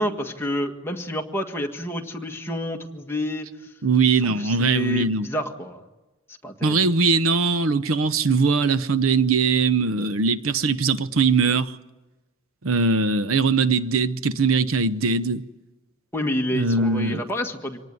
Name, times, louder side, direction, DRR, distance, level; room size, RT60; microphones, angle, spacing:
voice 1, 0.0-3.5 4.2-5.8 6.4-6.9 16.1-17.8, equal, 10° left, 1.8 m, -29 dB
voice 2, 3.8-5.3 6.6-11.8 12.6-15.4 16.5-17.2, right 4 dB, 85° right, 0.9 m, -21 dB
25.5 x 19.0 x 9.6 m
head